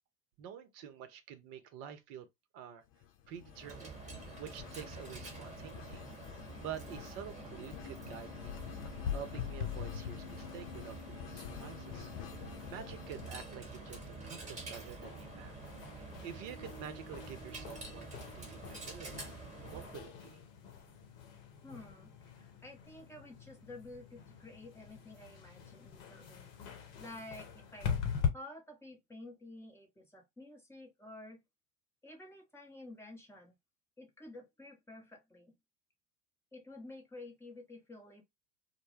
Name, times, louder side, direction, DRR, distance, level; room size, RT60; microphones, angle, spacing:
voice 1, 0.4-2.3 2.5-2.8 3.3-4.0 4.4-6.1 6.6-8.6 9.1-12.1 12.7-15.5 15.9-19.3 19.7-20.4, right 9 dB, 45° right, 0.6 m, -48 dB
sound 1, 2.8-13.5, left 11 dB, 40° left, 0.4 m, -50 dB
Coin (dropping), 3.5-20.1, right 2 dB, 15° right, 1.1 m, -48 dB
sound 2, 8.5-28.3, left 7 dB, 55° left, 0.8 m, -43 dB
voice 2, 21.6-26.5 27.0-28.0 28.3-31.4 32.0-33.6 34.0-35.5 36.5-38.2, left 2 dB, 5° left, 0.7 m, -51 dB
2.1 x 2.0 x 3.1 m
figure-of-eight pair, 75°, 48 cm